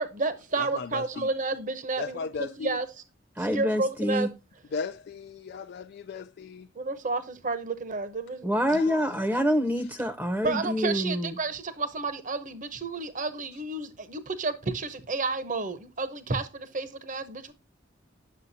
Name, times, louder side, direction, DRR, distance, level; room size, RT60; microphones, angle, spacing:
voice 1, 0.0-2.9 3.4-4.3 6.8-8.5 10.4-17.5, right 3 dB, 45° right, 0.8 m, -31 dB
voice 2, 0.6-1.3 2.0-2.8 4.7-6.7 8.7-9.2, left 5 dB, 60° left, 0.4 m, -37 dB
voice 3, 3.4-4.3 8.4-11.4, equal, 10° right, 0.7 m, -26 dB
9.4 x 6.4 x 2.6 m
head